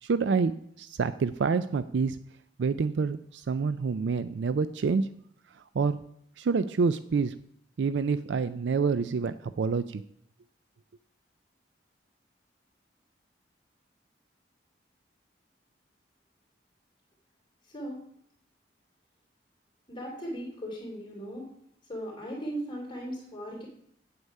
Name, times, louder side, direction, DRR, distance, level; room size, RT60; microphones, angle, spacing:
voice 1, 0.0-2.2 2.6-5.1 5.7-6.0 6.4-7.3 7.8-10.0, right 5 dB, 80° right, 13 dB, 0.4 m, -27 dB
voice 2, 17.7-18.1 19.9-21.5 21.9-23.7, equal, 25° left, -3 dB, 2.7 m, -37 dB
8.6 x 8.0 x 5.4 m, 0.69 s
head